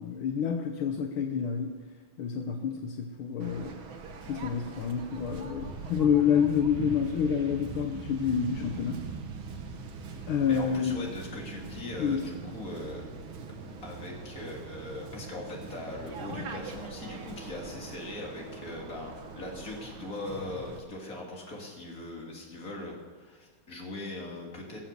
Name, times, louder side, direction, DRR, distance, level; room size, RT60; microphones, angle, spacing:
voice 1, 0.0-1.7 2.2-3.8 4.3-9.0 10.3-11.0 12.0-12.2, left 7 dB, 75° left, 4 dB, 1.7 m, -28 dB
Waves surf, 3.4-20.8, right 4 dB, 70° right, 2.0 m, -42 dB
voice 2, 10.5-13.0 13.8-24.9, left 2 dB, 40° left, -1 dB, 3.2 m, -40 dB
22.0 x 7.5 x 6.8 m, 1.5 s
omnidirectional pair, 2.3 m